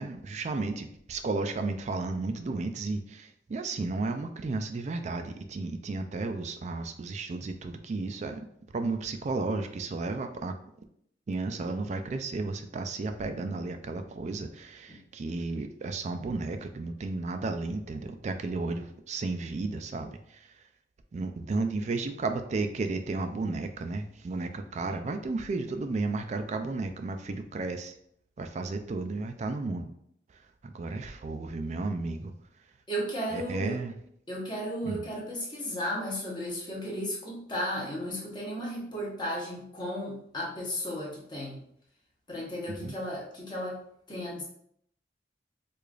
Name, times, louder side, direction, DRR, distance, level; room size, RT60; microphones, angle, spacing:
voice 1, 0.0-8.4 8.7-10.5 11.3-20.2 21.1-27.9 28.4-29.9 30.6-32.3 33.3-33.9 34.8-35.0 42.8-42.9, right 3 dB, 40° right, 7 dB, 0.3 m, -33 dB
voice 2, 32.9-33.8 34.3-41.6 42.3-43.8 44.1-44.4, equal, 25° left, -4 dB, 0.8 m, -34 dB
4.8 x 2.4 x 2.4 m, 0.69 s
head